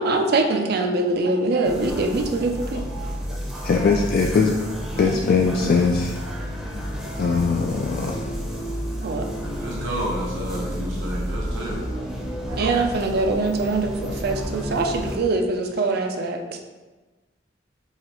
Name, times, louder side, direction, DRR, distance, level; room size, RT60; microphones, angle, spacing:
voice 1, 0.0-2.8 7.2-7.4 9.0-9.3 12.5-16.6, right 3 dB, 55° right, 4 dB, 0.4 m, -23 dB
sound 1, 1.6-15.2, equal, ahead, 0.6 m, -31 dB
voice 2, 2.7-4.6 5.0-6.2 7.2-8.5, left 4 dB, 55° left, 1 dB, 0.3 m, -22 dB
voice 3, 9.4-11.9, equal, 85° right, -5 dB, 0.9 m, -30 dB
4.8 x 3.2 x 3.0 m, 1.2 s
head